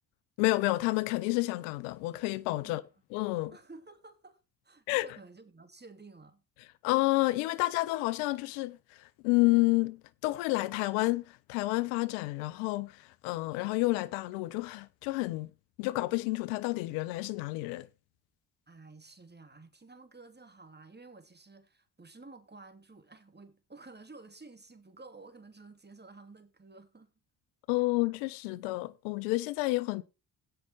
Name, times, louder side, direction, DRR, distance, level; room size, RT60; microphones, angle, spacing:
voice 1, 0.4-2.8 3.1-3.5 4.9-5.1 6.8-15.5 15.8-17.9 27.7-30.0, left 21 dB, 75° left, 0.7 m, -30 dB
voice 2, 3.5-6.4 18.7-27.1, right 3 dB, 20° right, 3.0 m, -52 dB
16.5 x 5.7 x 4.6 m
hypercardioid pair, 40°, 50 cm